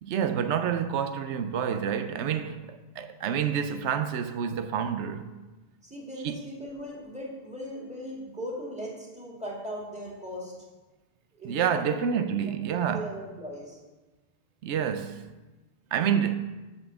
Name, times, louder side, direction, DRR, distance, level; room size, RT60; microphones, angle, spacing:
voice 1, 0.0-5.4 6.2-6.4 11.4-13.1 14.6-15.3 15.9-16.3, right 8 dB, 90° right, 0.9 m, -28 dB
voice 2, 5.8-10.6 11.3-12.2 12.7-13.8, equal, 5° right, 2.2 m, -38 dB
8.4 x 5.7 x 7.0 m
omnidirectional pair, 1.1 m